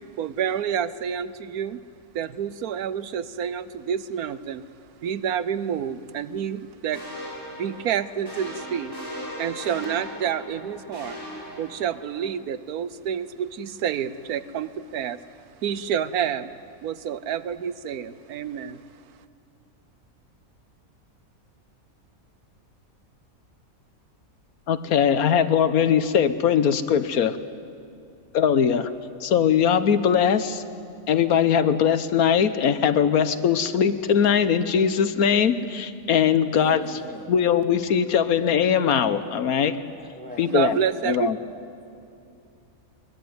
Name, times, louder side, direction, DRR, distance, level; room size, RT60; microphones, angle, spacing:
voice 1, 0.2-1.8 2.1-4.6 5.0-7.0 7.6-8.9 9.4-11.2 11.6-15.2 15.6-16.5 16.8-18.8 40.5-41.3, right 8 dB, 85° right, 15 dB, 1.3 m, -28 dB
sound 1, 6.9-12.3, equal, 15° right, 7.2 m, -38 dB
voice 2, 24.7-27.4 28.3-28.9 29.2-30.6 31.1-36.8 37.3-39.8 40.4-40.8 41.0-41.4, left 8 dB, 80° left, 12 dB, 1.4 m, -21 dB
voice 3, 36.6-37.3 40.0-40.5 41.8-42.1, right 1 dB, 5° left, 1 dB, 2.5 m, -41 dB
23.5 x 21.0 x 9.5 m, 2.6 s
omnidirectional pair, 1.5 m